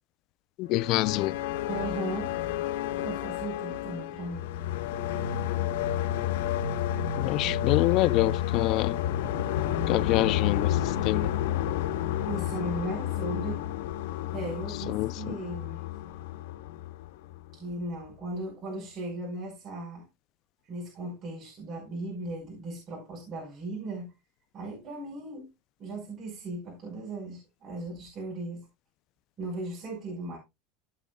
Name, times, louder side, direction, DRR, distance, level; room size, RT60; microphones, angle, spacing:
voice 1, 0.6-1.3 7.2-9.0 9.9-10.8 11.0-11.3 14.9-15.3, left 17 dB, 45° left, 0.4 m, -26 dB
sound 1, 0.7-17.5, left 11 dB, 85° left, 1.3 m, -30 dB
voice 2, 1.7-2.4 2.8-4.5 7.4-7.7 12.3-13.6 14.3-15.8 17.5-20.0 20.7-24.1 24.5-25.5 25.8-28.6 29.4-30.4, right 2 dB, 35° right, 5.4 m, -37 dB
16.0 x 6.2 x 2.4 m
supercardioid pair, 145°, 0 cm